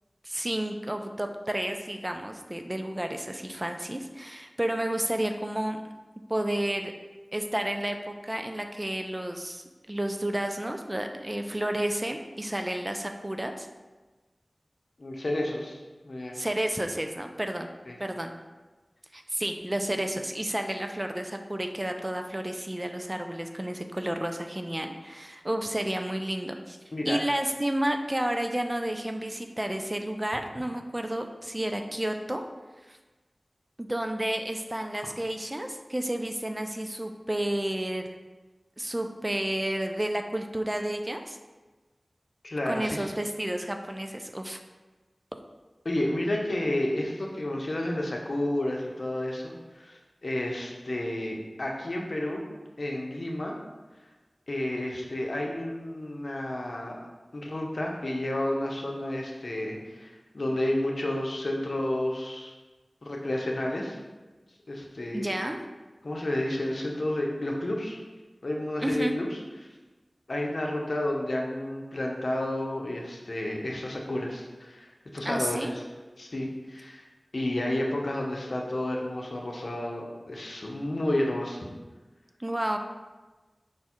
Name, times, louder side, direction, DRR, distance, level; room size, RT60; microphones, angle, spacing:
voice 1, 0.2-5.8 6.3-6.9 7.3-13.7 16.3-17.7 18.0-18.3 19.1-26.8 27.1-32.4 32.9-33.0 33.8-38.0 38.8-41.4 42.7-44.6 65.1-65.7 68.8-69.2 75.2-75.7 82.4-82.8, right 1 dB, 25° right, 5 dB, 0.4 m, -31 dB
voice 2, 15.0-15.8 16.0-16.4 17.9-18.0 26.9-27.2 42.4-43.1 45.8-52.4 52.8-53.5 54.5-57.0 57.3-62.5 63.0-64.0 64.7-65.3 66.0-68.0 68.4-69.4 70.3-74.9 75.1-75.8 76.2-77.0 77.3-81.6, left 1 dB, 70° left, -1 dB, 0.7 m, -31 dB
4.7 x 2.3 x 4.3 m, 1.2 s
wide cardioid pair, 40°, 0 cm